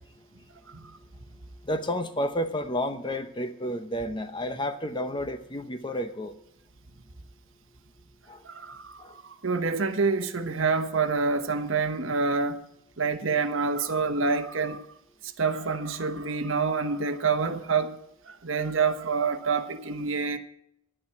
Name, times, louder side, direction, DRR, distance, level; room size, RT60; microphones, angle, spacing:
voice 1, 0.7-1.0 8.4-12.7 13.0-14.9 15.2-18.0 18.3-20.4, right 4 dB, 70° right, 1.1 m, -27 dB
voice 2, 1.6-6.4 8.3-8.4 9.0-9.2, equal, 20° left, 0.8 m, -31 dB
11.0 x 9.9 x 5.7 m
head